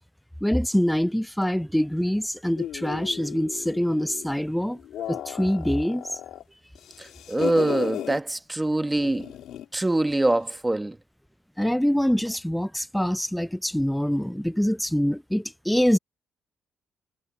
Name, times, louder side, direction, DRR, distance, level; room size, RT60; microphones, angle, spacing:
voice 1, 0.4-4.8 5.1-6.1 11.6-16.0, equal, 5° left, 0.4 m, -24 dB
sound 1, 2.6-4.3 4.7-6.4 6.7-8.2 9.0-9.7, left 11 dB, 80° left, 3.0 m, -35 dB
voice 2, 7.0-9.3 9.7-11.0, right 2 dB, 15° right, 1.4 m, -24 dB
cardioid pair, 90°, 0 cm